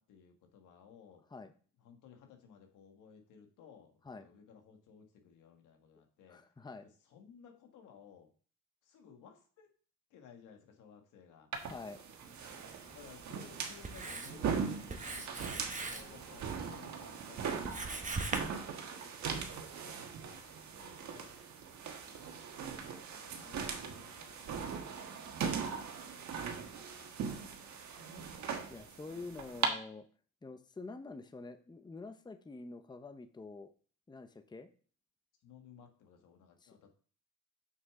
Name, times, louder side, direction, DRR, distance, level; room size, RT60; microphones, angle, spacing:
voice 1, 0.0-1.2 1.8-6.4 7.1-8.3 8.8-9.7 10.1-11.5 12.9-18.7 20.2-21.3 22.0-25.7 26.0-26.3 26.8-27.8 35.4-36.9, left 7 dB, 90° left, 3 dB, 1.7 m, -59 dB
voice 2, 6.3-6.9 11.6-12.0 21.1-21.3 28.7-30.1 30.4-33.7 34.1-34.7 36.6-36.7, left 3 dB, 15° left, 9 dB, 0.7 m, -47 dB
sound 1, 11.5-29.7, right 6 dB, 70° right, 1.4 m, -40 dB
Writing, 12.2-18.4, right 3 dB, 25° right, 1.3 m, -43 dB
6.7 x 6.4 x 3.7 m, 0.41 s
cardioid pair, 90°, 30 cm